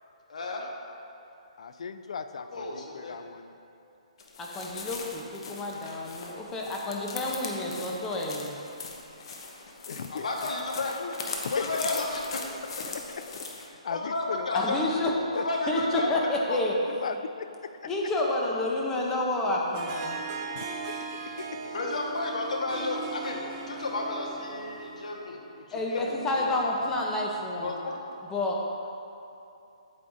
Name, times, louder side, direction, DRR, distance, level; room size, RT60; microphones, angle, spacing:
voice 1, 0.3-0.7 2.3-3.2 10.1-11.2 11.5-12.2 13.9-14.8 15.3-16.1 16.5-16.6 21.7-25.4 25.7-26.5 27.6-28.0, left 2 dB, 80° left, 0 dB, 1.3 m, -32 dB
voice 2, 1.6-3.5 9.9-10.5 11.4-11.7 13.6-14.6 15.3-15.4 16.9-17.5 20.5-21.1 21.4-21.7 22.2-22.3, left 6 dB, 60° left, 10 dB, 0.4 m, -37 dB
sound 1, 4.2-13.7, left 4 dB, 45° left, 0.9 m, -40 dB
voice 3, 4.4-8.6 14.5-15.1 15.7-16.7 17.8-20.2 25.7-27.7 28.3-28.6, left 2 dB, 10° left, -2 dB, 0.6 m, -29 dB
Harp, 19.7-25.2, right 4 dB, 30° right, 0.6 m, -38 dB
8.6 x 8.4 x 2.6 m, 2.7 s
hypercardioid pair, 165°, 4 cm